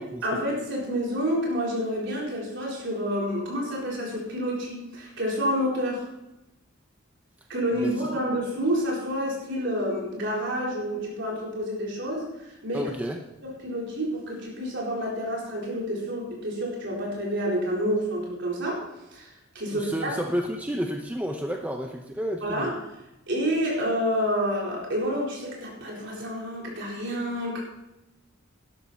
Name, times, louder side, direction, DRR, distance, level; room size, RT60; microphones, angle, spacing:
voice 1, 0.2-6.0 7.5-12.9 13.4-18.8 19.1-20.2 22.4-22.7 23.3-27.6, equal, 55° right, -3 dB, 4.1 m, -29 dB
voice 2, 12.7-13.2 19.7-22.7, equal, 5° right, 2 dB, 0.7 m, -31 dB
12.0 x 12.0 x 4.2 m, 0.93 s
head